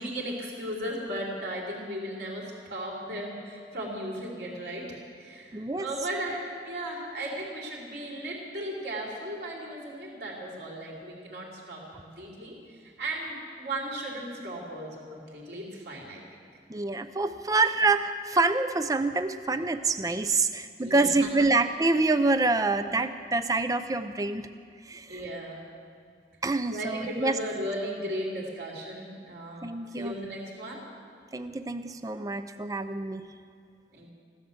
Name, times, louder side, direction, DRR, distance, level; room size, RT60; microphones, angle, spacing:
voice 1, 0.0-16.2 20.8-21.3 25.1-25.6 26.7-30.8 33.9-34.1, right 1 dB, 60° right, -3 dB, 3.5 m, -36 dB
voice 2, 5.5-5.9 16.7-24.5 24.8-25.2 26.4-27.4 29.6-30.2 31.3-33.3, right 3 dB, 20° right, 10 dB, 0.5 m, -26 dB
16.0 x 11.5 x 7.2 m, 2.2 s
head